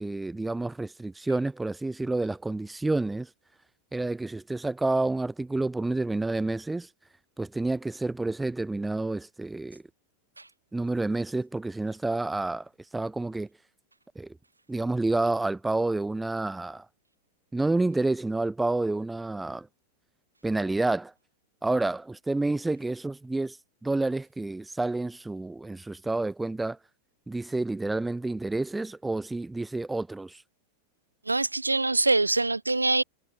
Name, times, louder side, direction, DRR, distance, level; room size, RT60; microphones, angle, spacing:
voice 1, 0.0-3.3 3.9-6.9 7.4-9.8 10.7-13.5 14.2-14.4 14.7-16.9 17.5-19.7 20.4-21.1 21.6-23.6 23.8-26.8 27.3-30.4, right 2 dB, 5° right, 1.8 m, -29 dB
voice 2, 31.3-33.0, right 2 dB, 80° right, 4.0 m, -24 dB
figure-of-eight pair, 90°, 0 cm